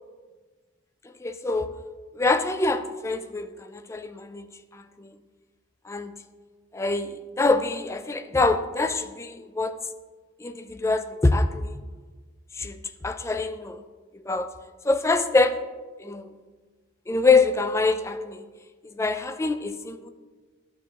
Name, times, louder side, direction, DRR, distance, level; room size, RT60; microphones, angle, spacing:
voice 1, 1.0-1.7 2.1-5.1 5.9-6.2 6.7-9.8 10.4-11.8 12.5-13.8 14.1-14.5 14.8-15.6 16.0-16.4 17.1-18.5 18.8-20.1, left 3 dB, 15° left, 9 dB, 0.3 m, -25 dB
11.5 x 4.8 x 3.6 m, 1.4 s
head